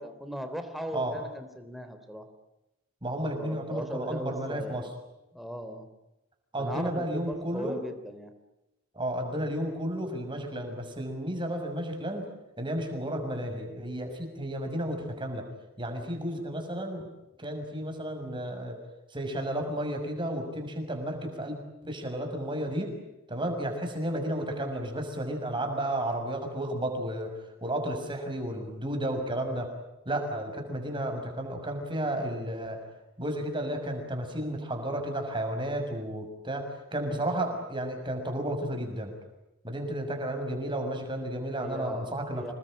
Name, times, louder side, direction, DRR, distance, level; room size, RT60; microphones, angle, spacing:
voice 1, 0.0-2.3 3.3-4.9 5.3-5.9 6.5-8.3 41.6-42.5, equal, ahead, 7 dB, 3.4 m, -38 dB
voice 2, 3.0-4.9 6.5-7.8 8.9-12.3 12.6-15.5 15.8-17.1 17.4-18.8 19.1-22.9 23.3-27.3 27.6-29.7 30.0-32.8 33.2-39.1 39.6-42.5, right 1 dB, 25° right, 4 dB, 6.2 m, -32 dB
28.0 x 20.5 x 8.9 m, 0.92 s
head